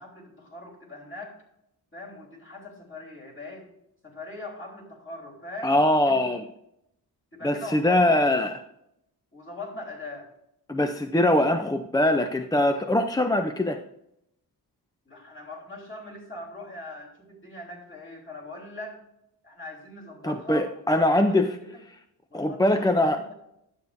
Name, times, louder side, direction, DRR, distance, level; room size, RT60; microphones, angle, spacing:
voice 1, 0.0-1.4 1.9-3.7 4.0-5.8 6.0-6.3 7.3-8.4 9.3-10.3 15.0-19.0 19.4-21.8 22.3-23.3, left 2 dB, 30° left, -3 dB, 3.4 m, -41 dB
voice 2, 5.6-6.4 7.4-8.5 10.7-13.8 20.2-21.6 22.3-23.2, left 1 dB, 10° left, 7 dB, 0.4 m, -22 dB
11.5 x 8.2 x 2.6 m, 0.80 s
cardioid pair, 95°, 39 cm